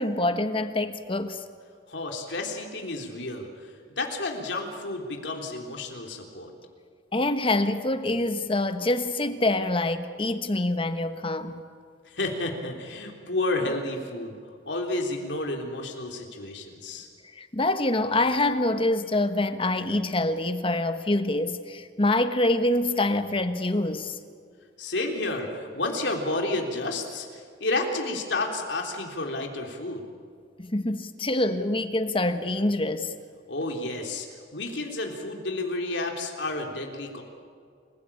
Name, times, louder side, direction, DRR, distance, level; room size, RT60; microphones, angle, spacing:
voice 1, 0.0-1.4 7.1-11.6 17.3-24.2 30.6-33.1, left 2 dB, 30° left, 9 dB, 1.3 m, -25 dB
voice 2, 1.9-6.5 12.1-14.4 14.7-17.1 24.8-30.1 33.5-34.3 34.5-37.2, left 2 dB, 75° left, 2 dB, 3.6 m, -31 dB
28.5 x 16.5 x 8.7 m, 2.2 s
head